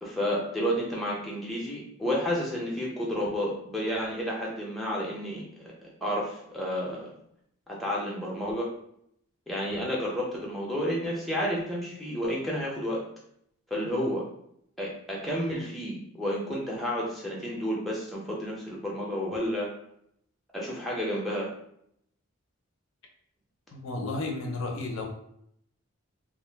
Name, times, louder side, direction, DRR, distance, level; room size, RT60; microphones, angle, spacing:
voice 1, 0.0-7.1 7.7-8.7 9.5-13.0 13.7-14.2 14.8-19.7 20.5-21.5, equal, ahead, -4 dB, 0.5 m, -31 dB
voice 2, 23.7-25.0, left 2 dB, 65° left, 1 dB, 0.6 m, -33 dB
2.4 x 2.2 x 3.3 m, 0.71 s
head